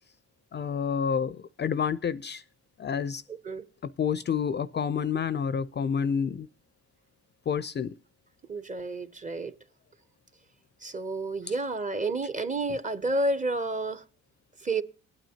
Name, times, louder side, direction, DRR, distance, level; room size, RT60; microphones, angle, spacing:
voice 1, 0.5-2.4 2.8-3.2 3.8-6.5 7.5-7.9, left 7 dB, 35° left, 0.4 m, -29 dB
voice 2, 3.3-3.6 8.5-9.5 10.8-14.0 14.6-14.8, right 2 dB, 25° right, 0.8 m, -30 dB
20.0 x 9.0 x 2.8 m
cardioid pair, 90°, 30 cm